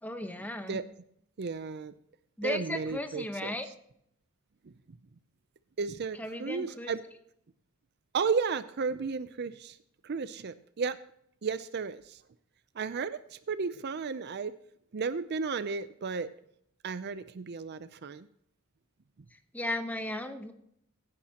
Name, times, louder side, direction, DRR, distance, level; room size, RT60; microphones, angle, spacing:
voice 1, 0.0-0.8 2.4-3.7 6.2-6.9 19.5-20.5, left 1 dB, 5° left, 7 dB, 0.9 m, -35 dB
voice 2, 1.4-1.9 2.4-3.6 4.9-5.0 5.8-7.0 8.1-9.8 10.0-11.0 11.4-12.2 12.7-14.5 14.9-16.3 16.8-18.3, right 5 dB, 50° right, 14 dB, 0.5 m, -33 dB
16.5 x 10.0 x 2.9 m, 0.71 s
head